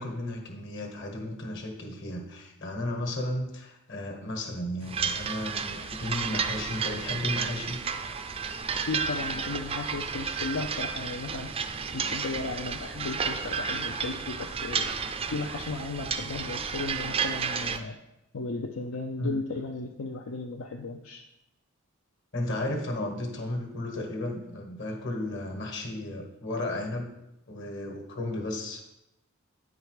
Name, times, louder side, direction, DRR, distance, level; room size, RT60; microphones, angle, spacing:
voice 1, 0.0-7.8 19.2-19.4 22.3-27.1 27.5-29.0, left 1 dB, 55° left, 3 dB, 1.4 m, -34 dB
sound 1, 4.9-17.8, right 6 dB, 25° right, 0.4 m, -32 dB
voice 2, 8.9-11.5 11.9-14.9 15.3-18.0 18.3-21.2, left 3 dB, 75° left, 2 dB, 0.6 m, -35 dB
9.4 x 4.9 x 4.8 m, 0.89 s
head